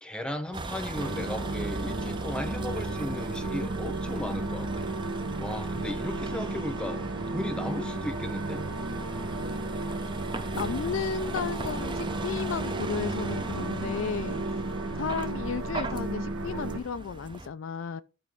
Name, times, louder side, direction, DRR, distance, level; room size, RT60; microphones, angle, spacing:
voice 1, 0.0-4.9 5.4-8.6, left 1 dB, 5° left, 0.8 m, -36 dB
Vehicle, 0.5-17.5, right 3 dB, 25° right, 0.6 m, -39 dB
sound 1, 0.9-16.8, right 2 dB, 65° right, 1.0 m, -33 dB
voice 2, 10.5-14.4 15.0-18.0, left 6 dB, 70° left, 0.4 m, -33 dB
11.5 x 4.2 x 3.5 m
head